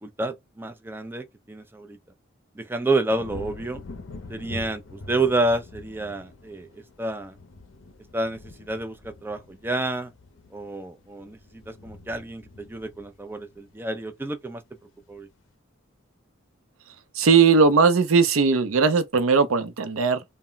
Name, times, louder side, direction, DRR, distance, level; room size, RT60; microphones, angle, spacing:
voice 1, 0.0-2.0 2.6-3.8 4.3-7.4 8.1-10.1 10.5-14.6 15.1-15.3, right 2 dB, 10° right, 0.3 m, -29 dB
sound 1, 3.1-14.4 14.8-15.2, left 2 dB, 65° left, 0.5 m, -44 dB
voice 2, 17.1-20.2, right 5 dB, 85° right, 0.5 m, -19 dB
2.1 x 2.1 x 3.7 m
head